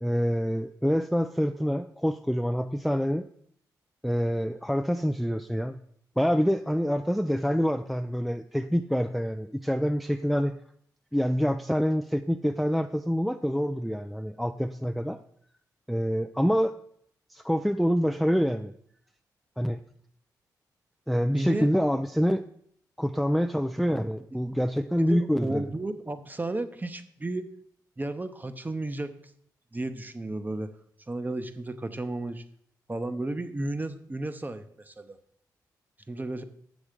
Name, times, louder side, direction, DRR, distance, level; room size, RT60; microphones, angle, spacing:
voice 1, 0.0-3.3 4.0-5.8 6.2-10.6 11.1-15.2 15.9-16.8 17.3-18.7 19.6-19.8 21.1-22.4 23.0-25.7, equal, ahead, 8 dB, 0.4 m, -26 dB
voice 2, 21.3-21.7 24.3-24.4 25.1-27.5 28.0-29.1 29.7-30.7 31.1-32.4 32.9-35.2 36.1-36.4, right 2 dB, 25° right, 10 dB, 0.9 m, -33 dB
7.1 x 6.2 x 5.1 m, 0.66 s
supercardioid pair, 55°, 8 cm